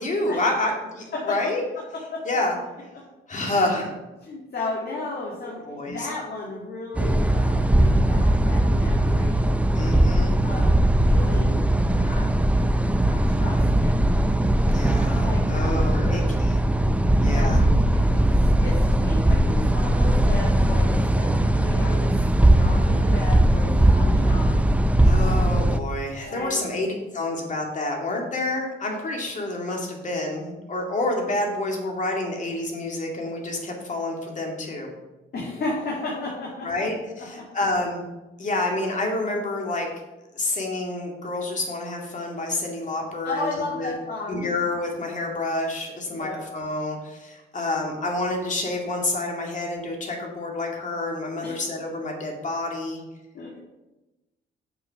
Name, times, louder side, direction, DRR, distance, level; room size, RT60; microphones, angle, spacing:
voice 1, 0.0-1.6 2.3-2.5 3.3-3.9 5.6-6.1 9.7-10.3 14.7-16.6 17.2-17.6 25.0-34.9 36.6-38.0 38.4-39.9 40.3-43.5 43.7-43.9 44.3-53.0, left 2 dB, 40° left, 1 dB, 2.4 m, -28 dB
voice 2, 1.9-2.2 3.4-3.6 4.2-9.5 10.4-10.8 11.0-12.3 13.0-13.9 14.8-16.4 17.1-22.2 22.5-25.1 26.2-26.8 35.3-36.8 37.2-37.5 43.2-44.5 46.1-46.4 51.4-51.6 53.3-53.6, left 2 dB, 55° left, -3 dB, 2.2 m, -34 dB
sound 1, 7.0-25.8, right 1 dB, 5° right, 0.5 m, -20 dB
7.2 x 6.3 x 5.8 m, 1.0 s
cardioid pair, 90°, 20 cm